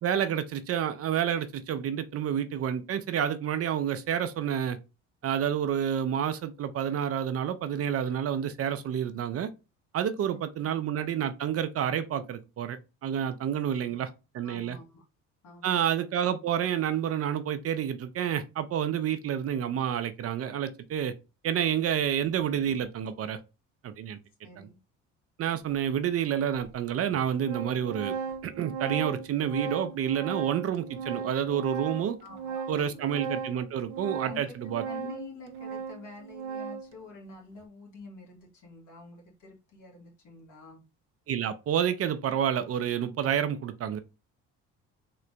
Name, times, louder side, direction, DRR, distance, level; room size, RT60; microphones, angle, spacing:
voice 1, 0.0-4.8 5.2-9.5 9.9-14.1 14.3-14.8 15.6-21.1 21.4-23.4 23.8-24.2 24.6-24.7 25.4-28.2 28.4-32.2 32.7-34.8 41.3-44.0, right 9 dB, 45° right, 0.5 m, -29 dB
voice 2, 14.4-15.0 15.4-15.9 24.4-24.8 32.2-33.2 34.2-34.5 34.8-40.8, left 3 dB, 65° left, 1.9 m, -47 dB
Organ, 25.7-25.8 26.6-26.7 27.1-37.0, right 6 dB, 90° right, 0.6 m, -37 dB
3.7 x 2.4 x 3.1 m
supercardioid pair, 80°, 33 cm